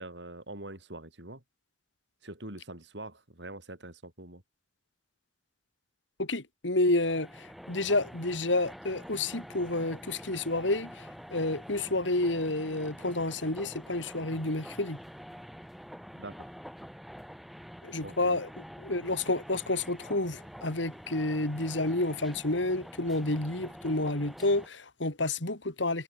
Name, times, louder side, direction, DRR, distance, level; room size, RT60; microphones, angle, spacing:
voice 1, 0.0-1.4 2.2-4.4 16.2-16.5 18.0-18.4, right 2 dB, 70° right, 5.7 m, -44 dB
voice 2, 6.2-7.3 7.7-10.9 11.3-15.0 17.8-18.5 18.8-26.0, left 2 dB, 85° left, 3.3 m, -29 dB
sound 1, 6.9-24.7, equal, ahead, 3.7 m, -47 dB
head